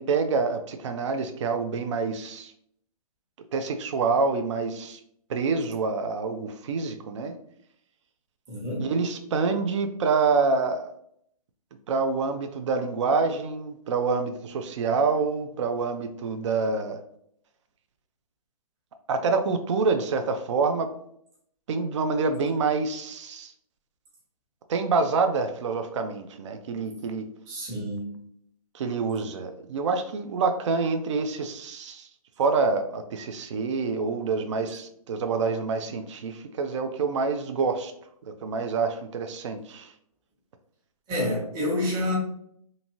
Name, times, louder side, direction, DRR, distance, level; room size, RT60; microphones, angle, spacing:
voice 1, 0.0-2.5 3.5-5.0 5.3-7.3 8.8-10.9 11.9-17.0 19.1-20.9 21.7-23.5 24.7-27.3 28.7-32.1 32.4-37.9 38.4-39.9, right 4 dB, 50° right, 7 dB, 0.4 m, -27 dB
voice 2, 8.5-8.9 27.5-28.2 41.1-42.1, left 1 dB, 20° right, -5 dB, 1.0 m, -28 dB
2.6 x 2.6 x 2.9 m, 0.69 s
hypercardioid pair, 140°, 20 cm